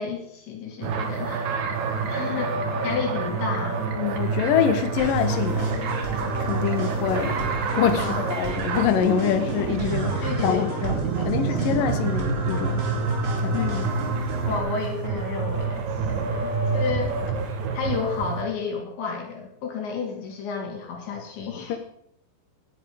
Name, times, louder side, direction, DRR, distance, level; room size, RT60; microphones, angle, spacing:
voice 1, 0.0-3.8 8.0-8.3 10.2-10.7 11.2-11.9 13.5-13.9 14.4-15.9 16.2-17.2 17.5-21.8, left 5 dB, 85° left, 1 dB, 5.5 m, -32 dB
sound 1, 0.8-18.4, right 4 dB, 55° right, 2.3 m, -27 dB
voice 2, 3.9-5.7 6.4-7.5 7.7-11.0 11.3-12.8 13.4-13.6 16.1-16.2 21.7-21.8, left 9 dB, 65° left, 7 dB, 2.5 m, -25 dB
sound 2, 5.0-14.6, right 1 dB, 25° right, 3.5 m, -34 dB
18.5 x 11.5 x 5.0 m, 0.71 s
omnidirectional pair, 5.0 m